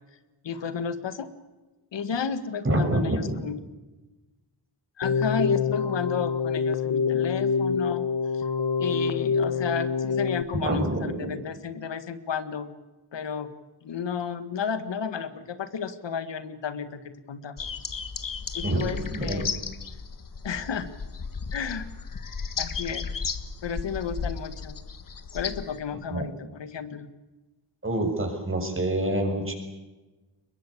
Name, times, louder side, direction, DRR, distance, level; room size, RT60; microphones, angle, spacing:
voice 1, 0.4-1.3 1.9-3.6 5.0-8.1 8.3-8.4 8.8-12.7 13.1-13.5 13.8-17.6 18.5-19.5 20.4-20.9 21.5-21.9 22.6-23.1 23.6-24.8 25.3-27.1, left 6 dB, 90° left, 11 dB, 1.9 m, -32 dB
voice 2, 2.6-3.4 10.6-11.3 18.6-19.5 26.1-26.3 27.8-29.5, right 1 dB, 30° right, 4 dB, 6.8 m, -27 dB
Keyboard (musical), 5.0-10.4, left 5 dB, 70° left, 1.4 m, -26 dB
sound 1, 17.6-25.8, left 5 dB, 50° left, 1.7 m, -34 dB
23.5 x 21.5 x 8.5 m, 1.1 s
wide cardioid pair, 95°, 42 cm